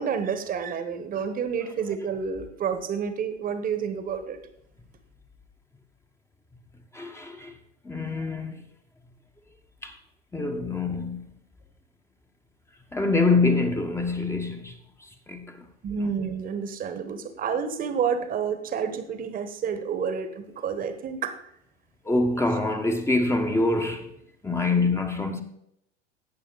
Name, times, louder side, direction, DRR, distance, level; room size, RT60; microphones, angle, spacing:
voice 1, 0.0-4.4 15.8-21.3, right 6 dB, 25° right, 1.3 m, -29 dB
voice 2, 6.9-7.5 7.8-8.5 9.8-9.9 10.3-11.2 12.9-14.8 15.3-15.4 22.1-24.1 24.4-25.4, left 3 dB, 5° left, 1.1 m, -25 dB
16.5 x 6.9 x 4.0 m
figure-of-eight pair, 90°, 36 cm